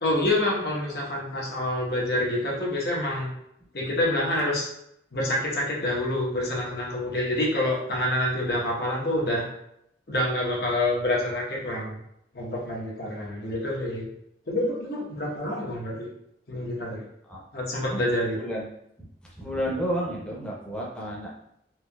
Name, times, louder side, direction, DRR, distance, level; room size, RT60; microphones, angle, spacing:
voice 1, 0.0-3.3 3.7-4.7 5.1-9.5 10.1-11.9 12.3-14.1 14.5-16.1 16.5-17.0 17.5-18.4, left 1 dB, 60° left, -3 dB, 1.0 m, -27 dB
voice 2, 18.4-18.7 19.0-19.1 19.4-21.3, equal, 5° left, -4 dB, 0.7 m, -31 dB
4.4 x 2.7 x 2.3 m, 0.77 s
head